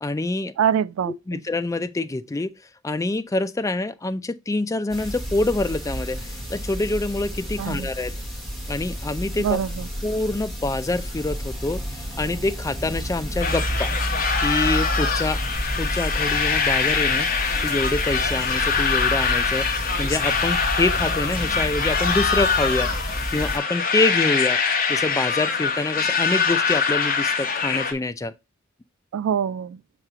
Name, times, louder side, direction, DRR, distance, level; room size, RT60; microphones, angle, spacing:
voice 1, 0.0-0.5 1.0-2.5 2.8-8.1 8.7-9.6 10.0-11.8 12.2-13.9 14.4-15.4 15.8-17.3 17.6-19.7 20.0-24.6 24.9-28.3, left 2 dB, 15° left, 0.3 m, -26 dB
voice 2, 0.6-1.4 7.6-7.9 9.4-9.8 29.1-29.8, right 8 dB, 80° right, 0.3 m, -24 dB
sound 1, 4.9-23.6, equal, ahead, 1.9 m, -30 dB
sound 2, 13.4-27.9, left 5 dB, 45° left, 1.0 m, -23 dB
6.5 x 3.1 x 4.9 m
head